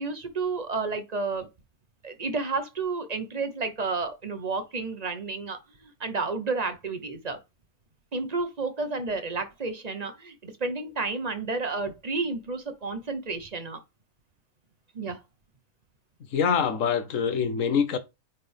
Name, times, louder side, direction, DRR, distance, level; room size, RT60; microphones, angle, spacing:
voice 1, 0.0-1.5 2.0-7.4 8.1-13.8 14.9-15.2, right 3 dB, 30° right, 1.0 m, -31 dB
voice 2, 16.3-18.0, left 7 dB, 65° left, 1.3 m, -24 dB
9.2 x 4.1 x 3.5 m
omnidirectional pair, 1.5 m